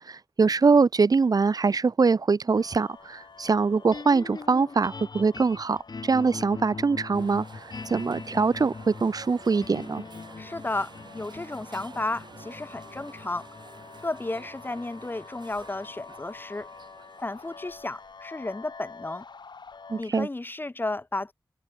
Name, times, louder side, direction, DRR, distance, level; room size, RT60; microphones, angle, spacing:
voice 1, 0.1-7.4 7.9-10.0 19.9-20.3, right 4 dB, 60° right, 0.6 m, -23 dB
sound 1, 2.5-20.0, left 5 dB, 90° left, 2.9 m, -48 dB
sound 2, 3.9-16.2, left 4 dB, 70° left, 6.2 m, -42 dB
sound 3, 7.1-18.4, right 4 dB, 85° right, 4.4 m, -50 dB
voice 2, 10.4-13.5 14.0-16.7 17.2-19.2 20.0-21.3, left 2 dB, 30° left, 1.0 m, -33 dB
open air
wide cardioid pair, 90°, 7 cm